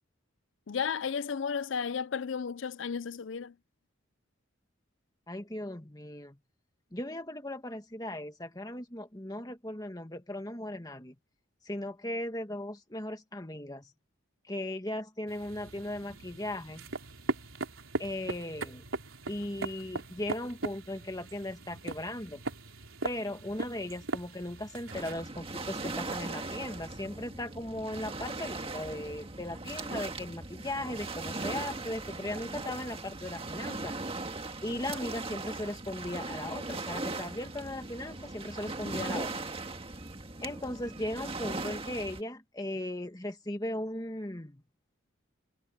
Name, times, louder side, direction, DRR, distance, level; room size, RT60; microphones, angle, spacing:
voice 1, 0.7-3.5, left 6 dB, 70° left, 0.5 m, -33 dB
voice 2, 5.3-6.4 6.9-11.1 11.6-13.9 14.5-16.8 18.0-18.8 19.3-22.4 23.0-34.2 34.6-39.4 40.4-44.6, left 1 dB, 20° left, 1.9 m, -37 dB
sound 1, 15.3-25.1, right 2 dB, 90° right, 3.9 m, -39 dB
Waves surf, 24.9-42.2, right 2 dB, 30° right, 1.8 m, -39 dB
head